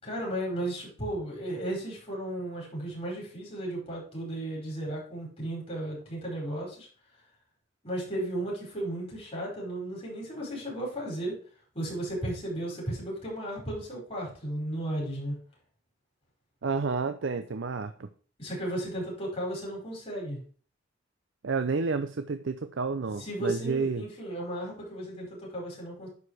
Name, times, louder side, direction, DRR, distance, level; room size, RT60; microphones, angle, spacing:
voice 1, 0.0-6.9 7.8-11.4 11.7-15.4 18.4-20.4 23.2-26.1, right 1 dB, 30° left, -2 dB, 5.2 m, -34 dB
voice 2, 16.6-18.1 21.4-24.0, right 4 dB, 70° right, 10 dB, 0.6 m, -30 dB
11.0 x 4.8 x 4.9 m, 0.43 s
head